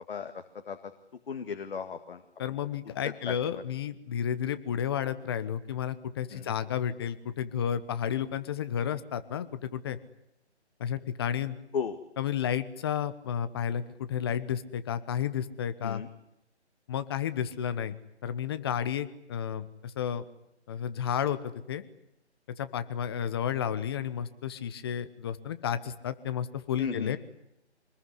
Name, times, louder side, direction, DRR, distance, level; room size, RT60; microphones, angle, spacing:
voice 1, 0.1-0.9 1.3-2.2 3.0-3.6 6.3-6.5 11.7-12.0 15.8-16.1 26.8-27.2, left 6 dB, 50° left, 8 dB, 2.0 m, -36 dB
voice 2, 2.4-10.0 10.8-11.6 12.2-16.0 16.9-20.2 20.7-21.8 22.6-27.2, left 9 dB, 20° left, 12 dB, 1.1 m, -32 dB
26.5 x 20.5 x 9.8 m, 0.82 s
figure-of-eight pair, 155°, 34 cm